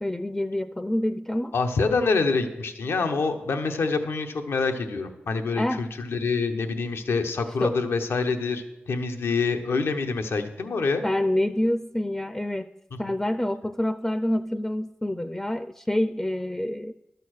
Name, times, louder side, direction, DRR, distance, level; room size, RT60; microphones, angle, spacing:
voice 1, 0.0-1.6 5.5-5.9 7.6-7.8 11.0-12.7 13.0-16.9, left 1 dB, 10° left, 12 dB, 0.4 m, -27 dB
voice 2, 1.5-11.0, left 4 dB, 90° left, 6 dB, 0.9 m, -26 dB
12.0 x 6.8 x 6.4 m, 0.99 s
cardioid pair, 50°, 4 cm